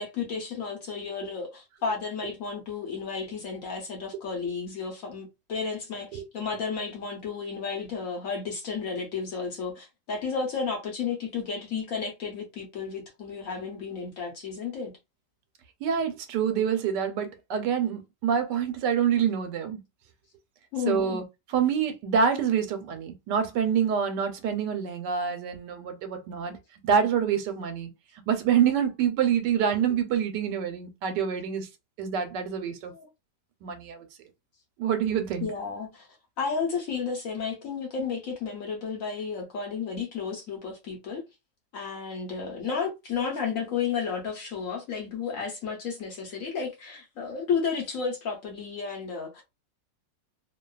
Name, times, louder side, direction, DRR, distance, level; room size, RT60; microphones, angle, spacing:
voice 1, 0.0-14.9 20.7-21.2 32.9-33.1 35.4-36.1 36.4-41.2 41.7-49.4, left 5 dB, 60° left, 1.0 m, -32 dB
voice 2, 15.8-19.8 20.9-21.2 21.5-26.6 26.8-27.9 28.3-31.7 32.0-32.9 33.6-34.0 34.8-35.5, right 7 dB, 80° right, 1.2 m, -26 dB
2.9 x 2.2 x 2.3 m
omnidirectional pair, 1.9 m